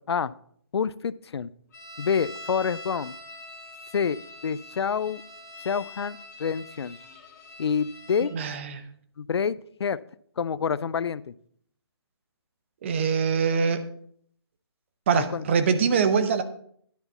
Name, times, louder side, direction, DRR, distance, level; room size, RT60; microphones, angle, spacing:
voice 1, 0.7-1.5 2.0-3.2 3.9-4.2 4.4-5.2 5.6-7.0 7.6-8.3 9.2-10.0 10.4-11.3 15.1-15.4, left 6 dB, 75° left, 19 dB, 0.4 m, -27 dB
sound 1, 1.7-8.3, left 1 dB, 40° left, 1.9 m, -44 dB
voice 2, 8.3-8.8 12.8-13.9 15.1-16.4, right 6 dB, 30° right, 10 dB, 0.7 m, -23 dB
10.5 x 4.0 x 6.9 m, 0.64 s
hypercardioid pair, 160°, 14 cm